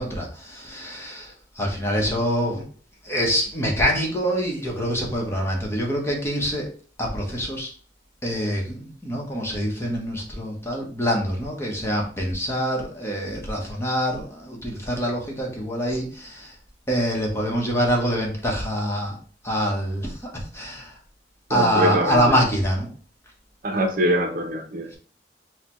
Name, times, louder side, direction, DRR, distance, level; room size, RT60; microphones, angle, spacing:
voice 1, 0.0-2.6 3.0-6.7 7.0-7.7 8.2-16.5 16.9-19.2 19.4-20.9 21.5-22.9, equal, 15° left, -1 dB, 1.0 m, -25 dB
voice 2, 21.5-22.3 23.6-24.9, right 1 dB, 50° right, 4 dB, 0.7 m, -23 dB
6.4 x 2.2 x 3.0 m, 0.41 s
head